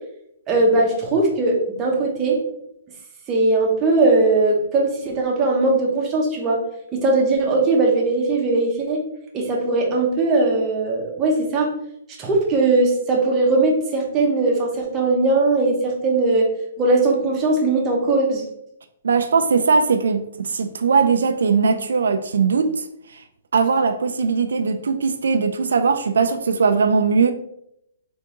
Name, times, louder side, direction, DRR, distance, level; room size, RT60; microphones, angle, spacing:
voice 1, 0.5-2.4 3.3-6.6 6.9-9.0 9.3-11.7 12.2-16.5 16.8-18.4, right 2 dB, 20° right, 0.8 m, -19 dB
voice 2, 19.0-22.8 23.1-23.2 23.5-27.3, right 5 dB, 85° right, 0.4 m, -19 dB
3.6 x 3.5 x 2.9 m
hypercardioid pair, 160°, 0 cm